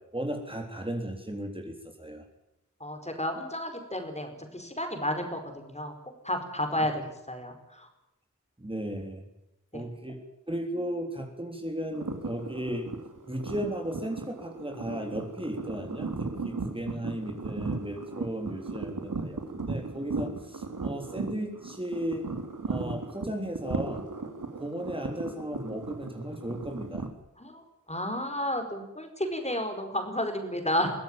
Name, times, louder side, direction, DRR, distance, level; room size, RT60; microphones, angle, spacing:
voice 1, 0.0-2.2 8.6-9.2 9.7-12.9 13.3-22.3 22.6-24.1 24.6-27.1, right 1 dB, 15° right, 3 dB, 3.7 m, -35 dB
voice 2, 2.8-5.9 6.2-7.0 7.3-7.9 27.4-30.9, left 1 dB, 20° left, 5 dB, 4.8 m, -32 dB
sound 1, 11.9-27.1, right 3 dB, 80° right, 2.8 m, -36 dB
23.0 x 16.5 x 9.0 m, 0.89 s
wide cardioid pair, 75°, 31 cm